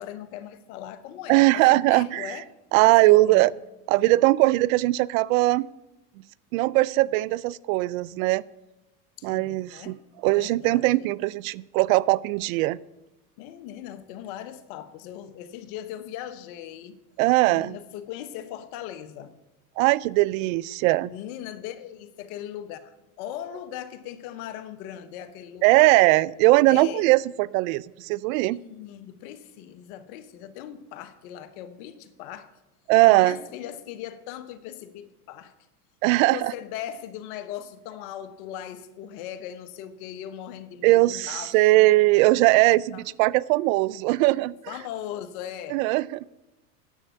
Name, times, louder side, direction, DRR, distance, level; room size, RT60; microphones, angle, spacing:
voice 1, 0.0-2.4 2.8-3.5 9.2-11.1 13.4-17.0 17.5-19.3 20.3-20.5 21.1-25.9 26.7-27.1 28.5-32.5 33.1-35.6 36.2-41.9 42.9-43.0 44.7-45.8, left 11 dB, 65° left, 1.3 m, -39 dB
voice 2, 1.3-2.4 2.7-3.5 3.9-5.7 6.5-8.4 9.2-9.9 10.2-12.8 17.2-17.8 19.8-21.1 25.6-28.6 32.9-33.4 36.0-36.5 40.8-44.5 45.7-46.3, right 19 dB, 60° right, 0.5 m, -20 dB
10.0 x 7.4 x 8.0 m
supercardioid pair, 120°, 46 cm